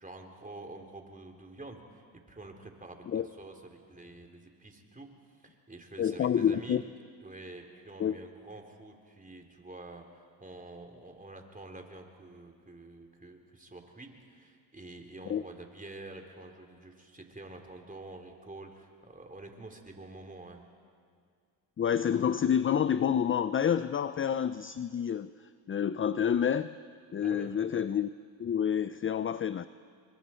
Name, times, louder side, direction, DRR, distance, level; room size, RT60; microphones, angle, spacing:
voice 1, 0.0-5.1 5.4-6.8 7.2-20.6 27.2-27.5, right 2 dB, 15° right, 3 dB, 3.4 m, -48 dB
voice 2, 6.0-6.8 8.0-8.2 15.3-15.4 21.8-25.3 25.7-26.7 27.1-28.1 28.4-29.7, left 8 dB, 25° left, 14 dB, 0.5 m, -28 dB
29.5 x 23.5 x 4.5 m, 2.2 s
supercardioid pair, 75°, 49 cm